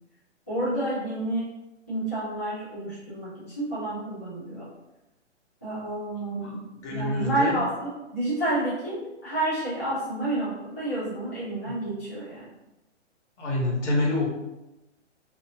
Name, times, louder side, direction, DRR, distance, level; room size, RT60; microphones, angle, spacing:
voice 1, 0.5-1.5 1.9-4.7 5.6-6.6 6.9-12.5, right 1 dB, 15° left, -13 dB, 0.3 m, -29 dB
voice 2, 6.4-7.6 13.4-14.2, left 2 dB, 80° left, -3 dB, 1.2 m, -27 dB
2.4 x 2.4 x 2.7 m, 0.96 s
hypercardioid pair, 155°, 36 cm